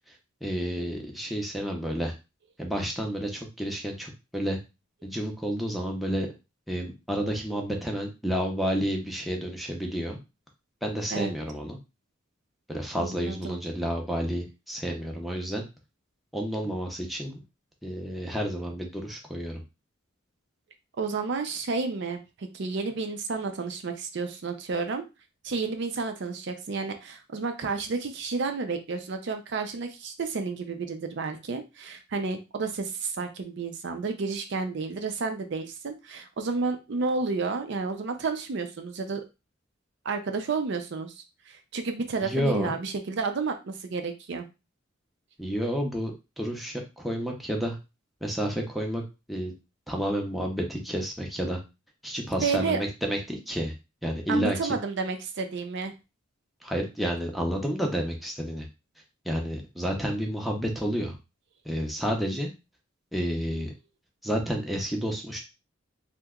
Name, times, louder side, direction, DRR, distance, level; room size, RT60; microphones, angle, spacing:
voice 1, 0.4-2.1 2.6-4.6 5.0-6.3 6.7-10.2 10.8-11.8 12.7-15.6 16.3-17.4 17.8-19.6 42.2-42.8 45.4-47.8 48.2-49.0 49.3-49.5 49.9-51.6 52.0-53.7 54.0-54.6 56.6-58.7 59.2-61.2 61.6-62.5 63.1-63.7 64.2-65.4, equal, ahead, 1 dB, 0.5 m, -30 dB
voice 2, 12.9-13.6 21.0-25.0 25.4-39.2 40.0-41.1 41.5-44.5 52.4-52.8 54.3-55.9, right 4 dB, 60° right, 6 dB, 0.5 m, -31 dB
2.8 x 2.1 x 3.5 m, 0.26 s
head